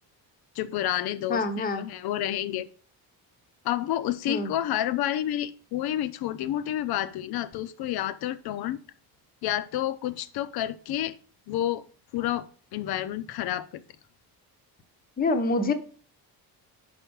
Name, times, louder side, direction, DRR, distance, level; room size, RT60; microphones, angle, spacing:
voice 1, 0.5-2.7 3.6-8.8 9.4-11.2 11.5-11.8 12.1-13.8, left 12 dB, 75° left, 0.7 m, -29 dB
voice 2, 1.3-1.9 4.3-4.5 15.2-15.7, left 2 dB, 25° left, 0.7 m, -26 dB
5.6 x 5.1 x 6.1 m
cardioid pair, 165°, 38 cm